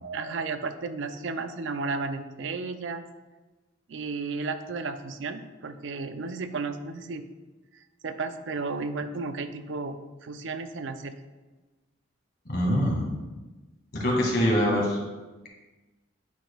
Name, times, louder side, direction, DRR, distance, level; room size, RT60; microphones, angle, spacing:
voice 1, 0.0-3.1 3.9-7.2 8.0-11.1, right 4 dB, 70° right, 9 dB, 0.5 m, -33 dB
voice 2, 12.5-13.2 14.0-15.0, equal, 55° left, -2 dB, 1.8 m, -24 dB
9.0 x 5.1 x 2.3 m, 1.2 s
head